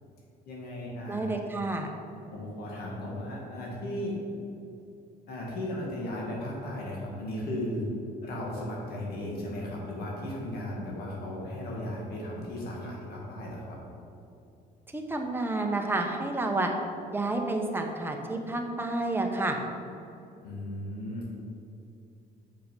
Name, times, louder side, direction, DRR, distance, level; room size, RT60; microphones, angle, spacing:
voice 1, 0.4-1.3 2.3-4.2 5.3-7.9 8.2-13.8 20.4-21.3, left 1 dB, 65° left, -3 dB, 1.8 m, -36 dB
voice 2, 1.1-1.9 14.9-16.7 17.1-19.6, right 2 dB, 15° right, 2 dB, 1.0 m, -30 dB
6.7 x 5.6 x 5.4 m, 2.7 s
cardioid pair, 110°, 17 cm